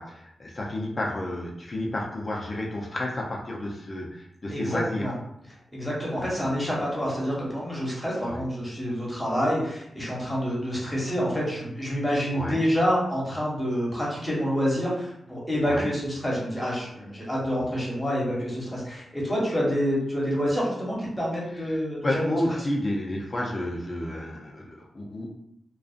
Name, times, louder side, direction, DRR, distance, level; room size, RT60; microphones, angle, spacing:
voice 1, 0.0-5.1 6.2-6.5 8.3-8.4 12.3-12.6 15.6-15.9 17.6-17.7 21.5-25.3, left 1 dB, 35° left, -2 dB, 0.5 m, -31 dB
voice 2, 4.5-5.1 5.7-22.2, equal, 10° left, -5 dB, 1.0 m, -27 dB
2.5 x 2.3 x 2.4 m, 0.76 s
cardioid pair, 85°, 0 cm